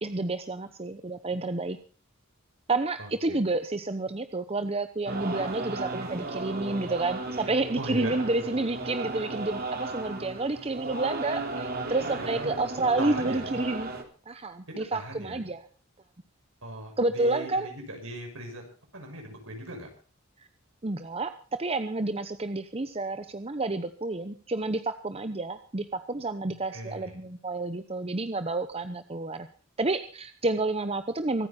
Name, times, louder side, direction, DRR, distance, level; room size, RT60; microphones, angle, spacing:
voice 1, 0.0-1.8 2.7-13.9 14.3-15.6 17.0-17.7 20.8-29.5 29.8-31.5, right 2 dB, 30° right, 9 dB, 0.9 m, -30 dB
voice 2, 3.0-3.4 7.8-8.2 12.2-12.5 13.0-13.4 14.9-15.4 16.6-18.6 18.9-19.9 26.7-27.2, right 1 dB, 70° right, 3 dB, 6.3 m, -38 dB
sound 1, 5.1-14.0, right 2 dB, 45° right, 2.8 m, -35 dB
25.0 x 9.4 x 4.3 m, 0.40 s
head